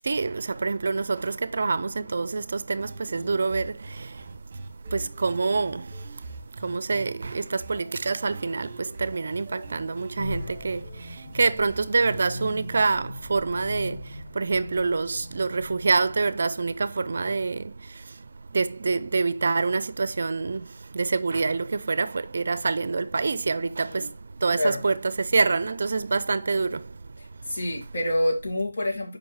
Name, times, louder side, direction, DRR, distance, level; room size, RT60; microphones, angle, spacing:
voice 1, 0.0-4.6 4.9-27.0 27.3-27.6, right 4 dB, 55° right, 0.5 m, -27 dB
sound 1, 2.8-12.8, right 2 dB, 30° right, 1.2 m, -43 dB
sound 2, 10.2-16.6, left 2 dB, 80° left, 1.9 m, -40 dB
voice 2, 27.5-29.2, left 1 dB, 50° left, 2.2 m, -27 dB
6.9 x 5.1 x 3.2 m
figure-of-eight pair, 170°, 0 cm